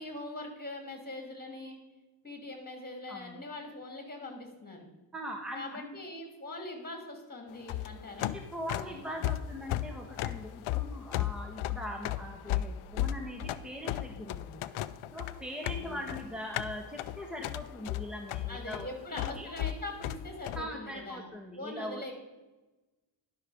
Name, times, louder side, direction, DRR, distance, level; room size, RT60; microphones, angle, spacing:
voice 1, 0.0-1.8 2.2-4.9 5.5-8.3 8.7-9.2 15.7-16.1 18.5-21.3 21.5-22.2, left 2 dB, 20° left, 3 dB, 3.0 m, -42 dB
voice 2, 3.1-3.4 5.1-5.9 8.3-14.6 15.1-19.5 20.5-22.1, equal, ahead, 2 dB, 1.4 m, -41 dB
sound 1, 7.5-20.6, left 13 dB, 80° left, 0.6 m, -35 dB
11.0 x 6.2 x 5.1 m, 1.1 s
cardioid pair, 75°, 49 cm